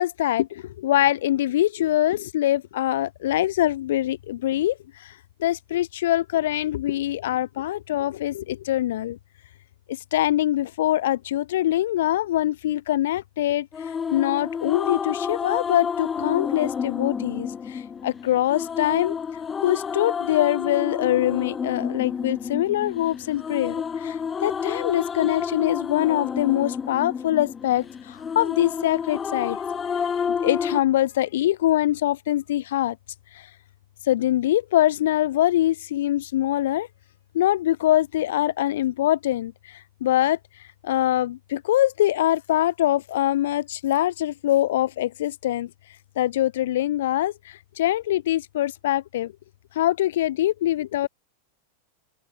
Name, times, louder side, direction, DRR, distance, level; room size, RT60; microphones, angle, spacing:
voice 1, 0.0-9.2 9.9-19.1 19.6-29.7 30.0-33.0 33.3-33.5 34.0-36.9 37.3-45.7 46.1-49.3 49.7-51.1, left 13 dB, 55° left, 1.6 m, -24 dB
sound 1, 13.7-30.8, left 6 dB, 20° left, 1.1 m, -30 dB
figure-of-eight pair, 90°, 0 cm